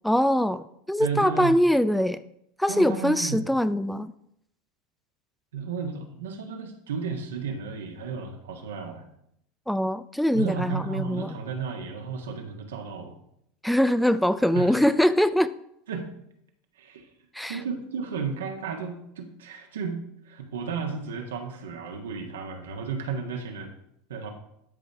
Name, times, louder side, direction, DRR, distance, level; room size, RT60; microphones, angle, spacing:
voice 1, 0.0-2.2 2.6-4.1 9.7-11.3 13.6-15.5 17.3-17.6, equal, ahead, 13 dB, 0.4 m, -23 dB
voice 2, 1.0-1.6 2.7-3.4 5.5-9.0 10.3-13.2 14.5-14.8 15.9-16.1 16.7-17.1 17.5-23.7 24.1-24.3, right 5 dB, 80° right, 3 dB, 1.4 m, -33 dB
12.5 x 5.2 x 3.5 m, 0.74 s
hypercardioid pair, 85°, 0 cm